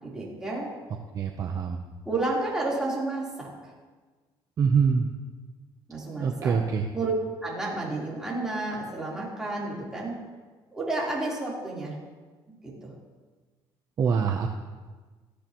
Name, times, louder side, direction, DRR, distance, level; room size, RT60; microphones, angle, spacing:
voice 1, 0.0-0.7 2.1-3.7 5.9-6.5 6.9-7.1 7.4-10.1 10.7-12.0 12.6-12.9, right 2 dB, 5° right, -6 dB, 3.7 m, -31 dB
voice 2, 1.1-1.8 4.6-5.1 6.2-6.9 14.0-14.6, right 6 dB, 35° right, 3 dB, 0.7 m, -24 dB
18.0 x 14.0 x 3.0 m, 1.3 s
cardioid pair, 165°, 10 cm